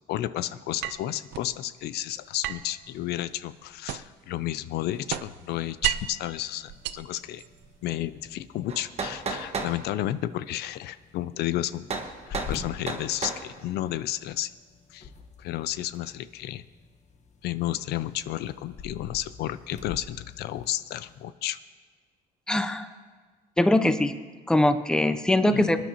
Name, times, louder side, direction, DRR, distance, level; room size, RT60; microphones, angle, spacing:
voice 1, 0.1-7.4 7.8-11.9 12.3-14.5 14.9-15.1 15.4-16.6 17.4-21.6 25.4-25.7, left 13 dB, 75° left, 15 dB, 0.4 m, -32 dB
sound 1, 0.8-1.5 2.4-4.3 4.6-6.2 6.7-7.8, right 13 dB, 85° right, 0.5 m, -33 dB
sound 2, 6.5-21.3, left 5 dB, 40° left, 1.2 m, -47 dB
sound 3, 8.7-9.8 11.9-12.1 12.3-12.6 12.9-13.4, right 4 dB, 40° right, 1.3 m, -32 dB
voice 2, 22.5-22.9 23.6-24.1 24.5-25.8, left 1 dB, 5° left, 10 dB, 0.6 m, -22 dB
25.0 x 10.0 x 2.9 m, 1.5 s
cardioid pair, 110°, 17 cm